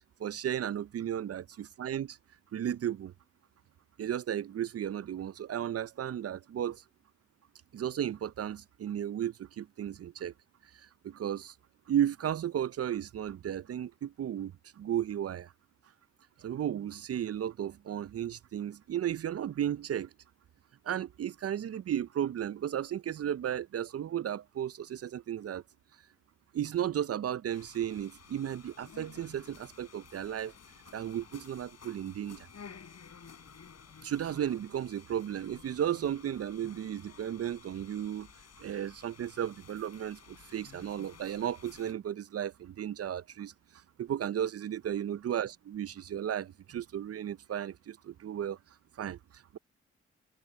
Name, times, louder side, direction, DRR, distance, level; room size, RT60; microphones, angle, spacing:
voice 1, 0.2-2.2 2.5-3.1 4.0-6.8 7.7-10.3 10.7-11.5 11.9-15.5 16.4-20.1 20.8-25.6 26.5-30.5 30.9-32.5 34.0-38.3 38.6-48.6 49.0-49.6, right 10 dB, 55° right, 0.6 m, -34 dB
sound 1, 27.5-41.9, left 6 dB, 60° left, 7.1 m, -54 dB
supercardioid pair, 40°, 29 cm